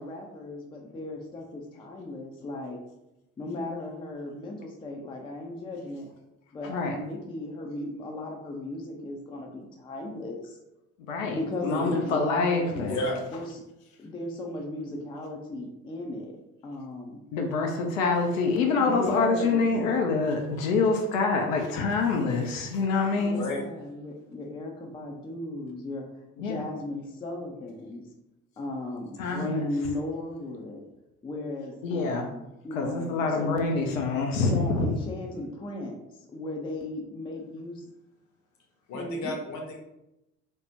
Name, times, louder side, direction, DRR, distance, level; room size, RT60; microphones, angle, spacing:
voice 1, 0.0-2.8 3.4-6.1 6.5-10.6 11.3-12.9 13.3-13.6 14.0-16.4 16.6-17.2 18.8-19.6 23.2-26.1 26.4-28.0 28.6-30.8 31.2-33.6 34.5-36.0 36.3-37.8 38.9-39.3, left 2 dB, 15° left, 2 dB, 0.4 m, -36 dB
voice 2, 6.6-6.9 11.1-11.4 11.6-13.0 17.3-23.4 26.4-26.6 29.2-29.7 31.8-32.3 32.7-34.9, left 4 dB, 75° left, 2 dB, 0.5 m, -26 dB
voice 3, 12.9-13.2 23.3-23.6 38.9-39.8, left 1 dB, 45° left, 2 dB, 0.8 m, -32 dB
3.3 x 2.0 x 2.7 m, 0.90 s
figure-of-eight pair, 55°, 40 cm